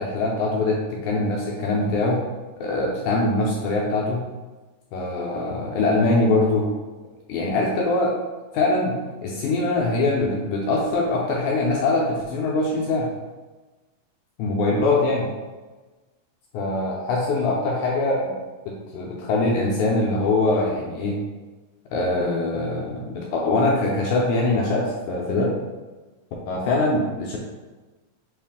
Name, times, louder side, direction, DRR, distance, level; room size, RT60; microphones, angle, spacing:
voice 1, 0.0-2.2 2.6-4.2 4.9-6.7 7.3-8.1 8.5-9.0 9.2-13.1 14.4-15.3 16.5-18.2 18.7-21.2 21.9-25.6 26.5-27.4, left 2 dB, 80° left, -2 dB, 1.8 m, -23 dB
5.6 x 2.5 x 3.5 m, 1.2 s
omnidirectional pair, 4.0 m